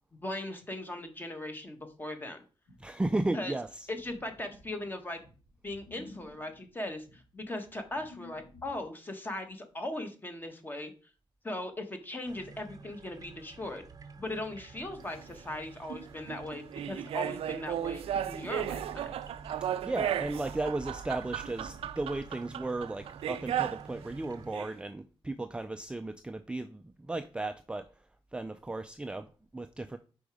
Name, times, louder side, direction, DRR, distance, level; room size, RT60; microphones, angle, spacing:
voice 1, 0.2-2.4 3.3-3.5 3.9-5.2 5.6-10.9 11.4-13.8 14.2-19.1, left 1 dB, 20° left, 1.3 m, -39 dB
sound 1, 2.7-8.9, left 2 dB, 80° left, 2.9 m, -54 dB
voice 2, 2.8-3.9 19.6-30.0, right 2 dB, 10° right, 0.4 m, -35 dB
sound 2, 12.3-24.5, right 4 dB, 40° right, 0.7 m, -49 dB
sound 3, 15.1-15.2 15.9-23.9 24.3-24.7, right 10 dB, 85° right, 0.4 m, -35 dB
5.1 x 5.0 x 4.8 m
cardioid pair, 115°, 10 cm